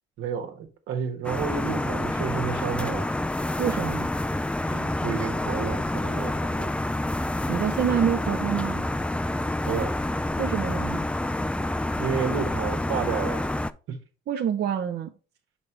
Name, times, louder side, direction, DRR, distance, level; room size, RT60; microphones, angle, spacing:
voice 1, 0.2-3.1 4.6-6.7 9.6-10.0 12.0-13.5 13.9-14.0, right 7 dB, 75° right, 1.3 m, -31 dB
sound 1, 1.2-13.7, left 1 dB, 5° left, 0.3 m, -28 dB
voice 2, 3.6-4.1 7.5-8.8 10.4-11.0 14.3-15.1, right 8 dB, 55° right, 0.7 m, -27 dB
5.9 x 5.2 x 3.2 m
supercardioid pair, 75°, 21 cm